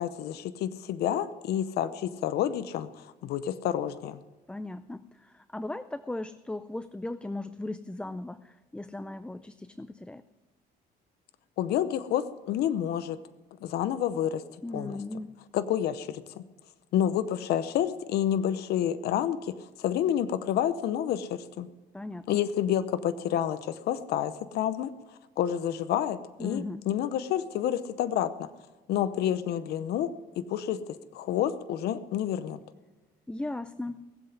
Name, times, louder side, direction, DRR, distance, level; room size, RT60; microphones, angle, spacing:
voice 1, 0.0-4.2 11.6-13.2 13.6-15.0 15.5-16.4 16.9-21.7 22.3-24.9 25.4-28.5 28.9-32.6, left 10 dB, 75° left, 13 dB, 0.7 m, -29 dB
voice 2, 4.5-10.2 14.6-15.4 21.9-22.4 26.4-26.9 33.3-34.1, left 2 dB, 5° left, 13 dB, 0.4 m, -37 dB
19.0 x 7.9 x 9.3 m, 1.2 s
cardioid pair, 110°, 17 cm